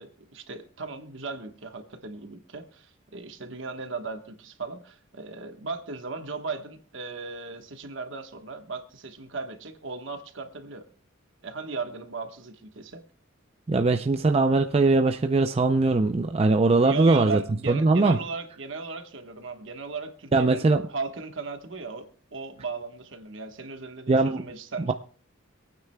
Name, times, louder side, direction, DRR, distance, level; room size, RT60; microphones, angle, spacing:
voice 1, 0.0-10.9 11.4-13.0 16.8-24.9, right 4 dB, 65° right, 7 dB, 1.2 m, -37 dB
voice 2, 13.7-17.4 17.7-18.2 20.3-20.8 24.1-24.4 24.9-25.0, right 3 dB, 30° right, 6 dB, 0.4 m, -21 dB
26.0 x 9.1 x 2.2 m, 0.43 s
head